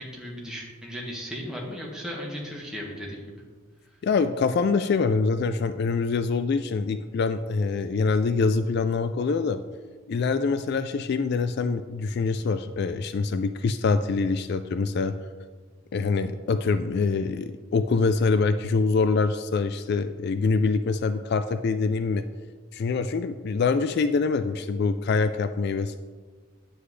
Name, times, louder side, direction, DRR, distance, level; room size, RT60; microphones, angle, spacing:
voice 1, 0.0-3.3, equal, 5° right, -3 dB, 1.6 m, -36 dB
voice 2, 4.0-9.6 10.1-15.1 15.9-22.2 22.7-26.0, left 4 dB, 50° left, 10 dB, 0.3 m, -25 dB
9.9 x 7.8 x 3.2 m, 1.5 s
head